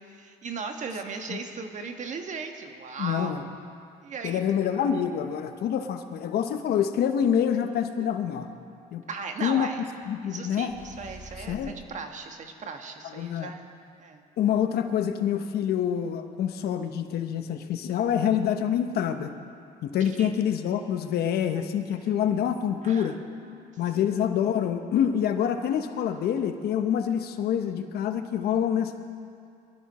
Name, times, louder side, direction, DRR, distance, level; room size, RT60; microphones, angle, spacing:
voice 1, 0.0-3.4 4.0-4.4 9.1-9.8 10.2-13.7 14.0-14.2 20.0-20.3 22.8-24.0, right 5 dB, 45° right, 5 dB, 1.5 m, -38 dB
voice 2, 3.0-3.4 4.2-8.5 8.9-9.0 9.4-9.7 10.1-10.7 11.5-11.7 13.1-13.5 14.4-19.3 19.8-23.2 23.8-28.9, left 9 dB, 70° left, 7 dB, 1.1 m, -26 dB
sound 1, 10.7-11.9, left 1 dB, 45° left, 3.5 m, -45 dB
23.0 x 13.0 x 4.3 m, 2.4 s
cardioid pair, 110°, 17 cm